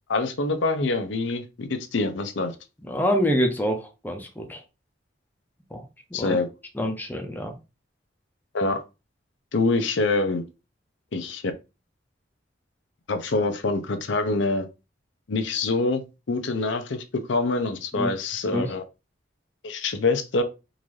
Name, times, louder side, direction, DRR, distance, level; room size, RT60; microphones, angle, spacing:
voice 1, 0.1-2.5 6.1-6.5 8.5-8.8 9.5-10.4 11.1-11.4 13.1-14.7 15.3-18.8 19.6-20.4, left 3 dB, 80° left, 0.6 m, -25 dB
voice 2, 2.8-4.6 5.7-5.8 6.2-6.4 6.8-7.5 17.9-18.1 18.5-18.6, equal, 10° left, 0.5 m, -26 dB
3.8 x 2.6 x 3.1 m
head